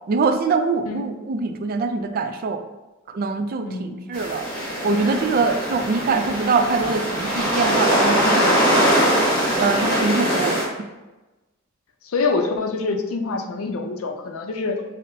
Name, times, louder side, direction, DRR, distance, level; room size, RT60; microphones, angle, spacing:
voice 1, 0.1-2.6 3.1-4.4 4.8-8.5 9.5-10.7, right 4 dB, 45° right, 7 dB, 0.3 m, -23 dB
voice 2, 3.6-4.1 12.0-14.8, left 3 dB, 85° left, 5 dB, 0.5 m, -26 dB
sound 1, 4.1-10.6, equal, 5° left, 1.3 m, -21 dB
5.1 x 2.0 x 2.7 m, 1.1 s
head